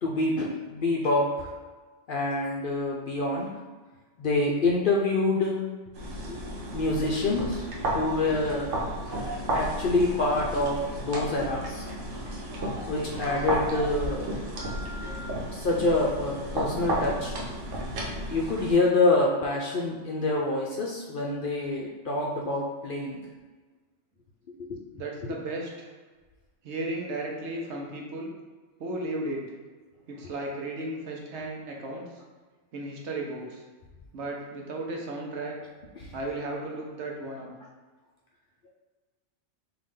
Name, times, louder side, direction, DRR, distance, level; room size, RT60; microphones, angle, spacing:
voice 1, 0.0-1.5 2.1-3.5 4.2-5.6 6.3-6.4 6.7-7.7 7.9-8.7 9.2-11.9 12.9-14.4 15.0-15.1 15.5-17.4 18.3-23.2 24.6-24.8 36.0-36.1, left 2 dB, 60° left, -2 dB, 0.6 m, -26 dB
sound 1, 5.9-18.7, right 1 dB, 85° right, 1.2 m, -33 dB
Telephone, 9.1-9.4 9.9-11.6 11.9-14.0 14.6-15.3, right 2 dB, 40° right, 0.3 m, -41 dB
voice 2, 24.9-25.9 26.6-28.3 28.8-29.5 30.1-32.1 32.7-33.6 34.1-35.6 36.1-37.5, right 2 dB, 70° right, -1 dB, 1.0 m, -35 dB
3.9 x 2.7 x 3.6 m, 1.4 s
omnidirectional pair, 1.2 m